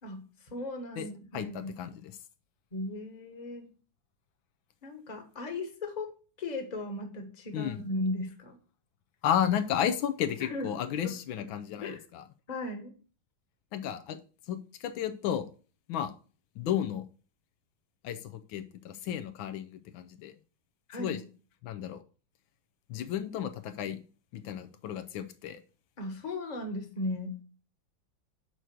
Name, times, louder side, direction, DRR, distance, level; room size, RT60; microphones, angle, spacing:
voice 1, 0.0-1.7 2.7-3.7 4.8-6.1 6.4-8.6 10.4-11.1 11.7-12.0 12.5-12.9 20.9-21.2 26.0-27.4, left 2 dB, 25° left, 5 dB, 1.2 m, -37 dB
voice 2, 1.3-2.1 7.5-7.8 9.2-12.2 13.7-14.2 14.5-15.5 15.9-16.1 16.6-17.0 18.0-20.3 21.0-21.2 21.6-22.0 22.9-24.0 24.3-25.6, left 9 dB, 80° left, 9 dB, 1.4 m, -33 dB
6.2 x 4.5 x 6.6 m, 0.39 s
omnidirectional pair, 2.2 m